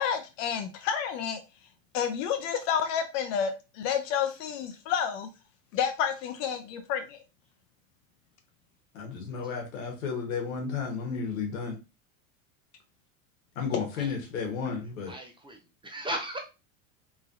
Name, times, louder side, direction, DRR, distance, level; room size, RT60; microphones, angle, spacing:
voice 1, 0.0-1.4 1.9-5.3 5.7-7.2, left 8 dB, 70° left, 0.6 m, -30 dB
voice 2, 8.9-11.7 13.5-15.1, left 5 dB, 90° left, 1.1 m, -33 dB
voice 3, 15.1-15.6 15.8-16.4, right 1 dB, 10° right, 0.6 m, -36 dB
3.0 x 2.6 x 2.4 m
supercardioid pair, 105°, 40 cm